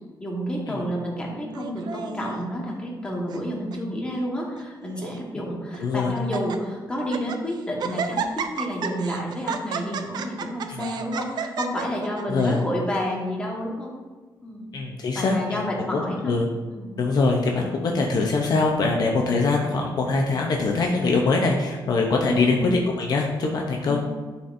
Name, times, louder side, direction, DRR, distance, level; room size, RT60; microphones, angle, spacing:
voice 1, 0.2-13.9 14.4-14.7 15.1-16.3 16.7-17.0 22.2-22.7 23.8-24.1, equal, 10° left, -3 dB, 1.3 m, -30 dB
Laughter, 1.5-2.4 3.1-3.4 3.7-3.8 4.6-5.2 5.7-5.8 6.2-6.6 7.0-7.4 7.8-12.6, right 6 dB, 55° right, 0.5 m, -32 dB
voice 2, 5.8-6.2 10.7-10.8 12.3-12.6 14.7-15.6 15.9-16.5 17.0-24.0, left 3 dB, 50° left, 0 dB, 0.7 m, -23 dB
11.0 x 4.3 x 2.6 m, 1.3 s
wide cardioid pair, 165°, 8 cm